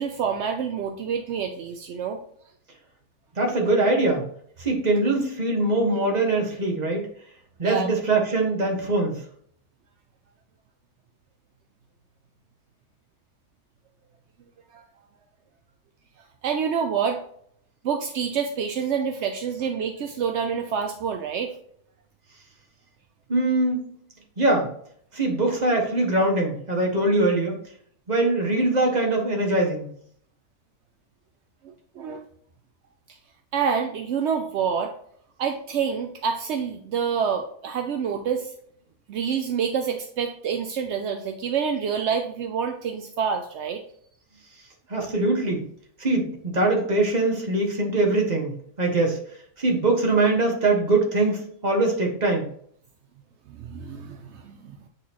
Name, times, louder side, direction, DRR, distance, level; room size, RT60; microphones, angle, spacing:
voice 1, 0.0-2.2 7.6-7.9 14.7-14.8 16.4-17.2 17.8-21.5 31.6-32.2 33.5-34.9 35.4-38.5 39.1-43.8 53.5-54.8, right 7 dB, 70° right, 5 dB, 0.6 m, -27 dB
voice 2, 3.4-4.3 4.6-7.1 7.6-9.2 23.3-23.8 24.4-24.7 25.1-27.6 28.1-29.9 44.9-45.7 46.0-49.2 49.6-52.5, right 2 dB, 25° right, 1 dB, 1.4 m, -22 dB
9.2 x 4.1 x 3.0 m, 0.63 s
omnidirectional pair, 1.8 m